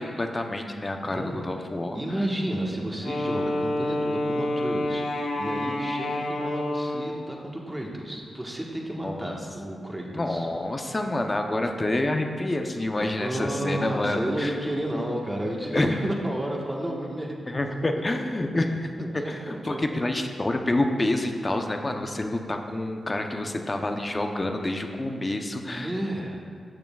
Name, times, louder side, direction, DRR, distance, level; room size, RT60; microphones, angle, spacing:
voice 1, 0.0-2.0 9.0-9.3 10.1-14.6 15.7-15.9 17.5-19.4 19.6-25.9, left 1 dB, 30° left, 4 dB, 0.7 m, -28 dB
voice 2, 1.0-1.4 1.9-10.5 13.0-17.8 19.0-19.8 25.6-26.4, right 1 dB, 15° right, -1 dB, 1.3 m, -32 dB
Wind instrument woodwind instrument, 3.0-7.3, left 1 dB, 85° left, 1.0 m, -28 dB
12.0 x 6.8 x 2.3 m, 2.2 s
cardioid pair, 70°, 0 cm